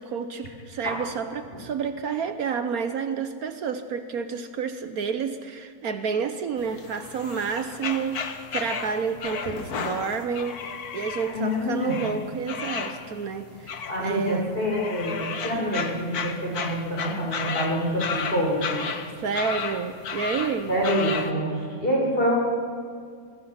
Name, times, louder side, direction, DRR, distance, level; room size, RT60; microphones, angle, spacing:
voice 1, 0.0-10.6 10.9-14.5 15.5-15.9 19.2-20.7, right 6 dB, 65° right, 9 dB, 1.4 m, -30 dB
sound 1, 6.6-21.3, left 6 dB, 70° left, 1.7 m, -34 dB
voice 2, 11.3-12.0 13.9-18.9 20.7-22.3, equal, 35° left, -2 dB, 5.6 m, -26 dB
25.5 x 21.5 x 5.8 m, 2.1 s
omnidirectional pair, 1.7 m